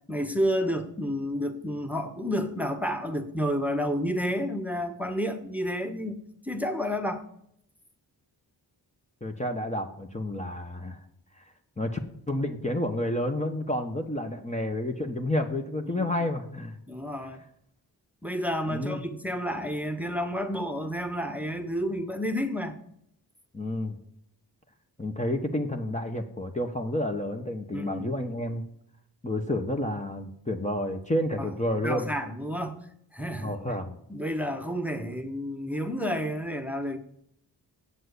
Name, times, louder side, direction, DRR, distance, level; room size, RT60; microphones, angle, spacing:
voice 1, 0.1-6.2 6.4-7.2 15.9-16.0 16.9-17.4 18.2-22.8 27.7-28.0 31.4-31.5 31.8-32.8 33.1-33.5 34.1-37.0, equal, 5° right, 6 dB, 1.2 m, -30 dB
voice 2, 9.2-11.0 11.4-11.5 11.8-12.0 12.3-16.8 18.7-19.0 23.5-24.0 25.0-28.6 29.2-32.1 33.4-34.0, left 1 dB, 15° left, 3 dB, 1.1 m, -30 dB
7.9 x 7.5 x 8.3 m, 0.72 s
cardioid pair, 55°, 43 cm